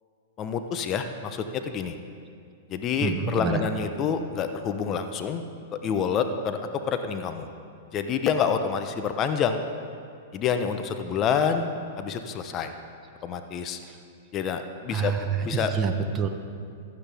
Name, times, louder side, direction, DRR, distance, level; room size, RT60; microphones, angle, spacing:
voice 1, 0.4-2.0 2.7-5.4 5.7-6.6 6.9-7.5 7.9-9.6 10.3-11.7 12.0-12.7 13.2-13.8 14.3-15.1 15.5-15.7, left 7 dB, 35° left, 7 dB, 0.8 m, -27 dB
voice 2, 3.0-3.6 14.9-16.3, right 6 dB, 25° right, 5 dB, 1.0 m, -27 dB
15.5 x 12.0 x 3.5 m, 2.4 s
hypercardioid pair, 115°, 0 cm